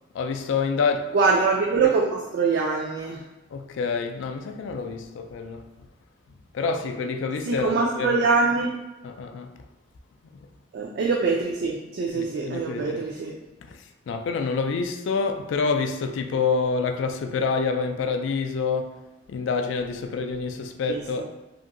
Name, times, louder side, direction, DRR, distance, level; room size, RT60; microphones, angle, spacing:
voice 1, 0.1-1.2 3.5-5.7 6.5-8.2 9.0-9.6 12.1-13.0 13.7-13.8 14.1-19.0 19.3-21.2, left 4 dB, 70° left, 0.3 m, -27 dB
voice 2, 1.1-3.2 7.5-8.8 10.7-13.3 20.9-21.0, right 4 dB, 55° right, 0.3 m, -23 dB
2.8 x 2.6 x 2.5 m
head